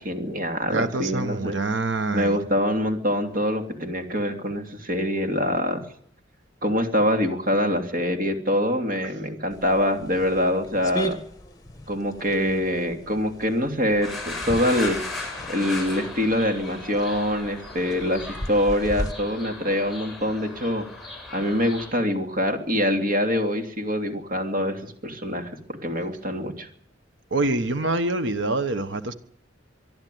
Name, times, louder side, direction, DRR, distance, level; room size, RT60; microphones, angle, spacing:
voice 1, 0.0-1.5 2.1-5.8 6.6-11.2 11.9-15.0 15.5-20.9 21.3-26.7, equal, 50° right, 3.1 m, -25 dB
voice 2, 0.7-2.4 27.3-29.1, right 2 dB, 75° right, 1.3 m, -25 dB
sound 1, 9.5-19.1, equal, 20° left, 1.8 m, -37 dB
sound 2, 14.0-21.9, left 2 dB, ahead, 7.3 m, -37 dB
24.0 x 12.5 x 9.4 m
head